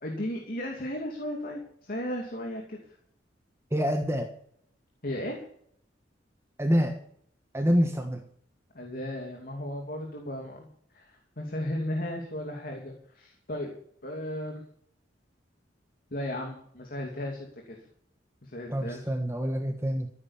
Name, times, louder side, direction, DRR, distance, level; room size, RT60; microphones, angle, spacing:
voice 1, 0.0-3.0 5.0-5.4 8.7-10.7 10.9-13.7 14.0-14.6 16.1-17.8 18.4-19.0, left 1 dB, 50° left, 2 dB, 2.6 m, -35 dB
voice 2, 3.7-4.3 6.6-7.0 7.5-8.2 18.7-20.1, equal, 15° right, 5 dB, 1.3 m, -26 dB
15.0 x 8.8 x 7.2 m, 0.64 s
head